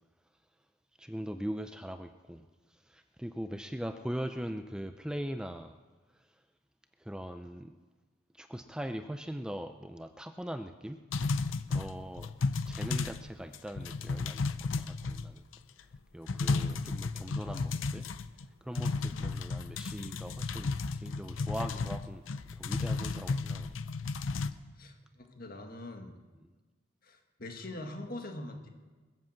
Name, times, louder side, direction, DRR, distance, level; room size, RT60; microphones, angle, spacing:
voice 1, 1.0-5.8 7.0-7.8 8.3-11.0 11.7-12.3 12.7-15.4 16.1-18.0 18.6-23.8, equal, 5° right, 8 dB, 0.4 m, -41 dB
sound 1, 11.1-13.3 13.5-15.5 15.9-16.0 16.3-18.4 18.8-24.5, left 4 dB, 90° left, 0.6 m, -33 dB
voice 2, 19.1-19.5 24.8-26.2 27.0-28.7, left 1 dB, 50° left, 4 dB, 1.8 m, -43 dB
21.0 x 7.9 x 7.3 m, 1.3 s
head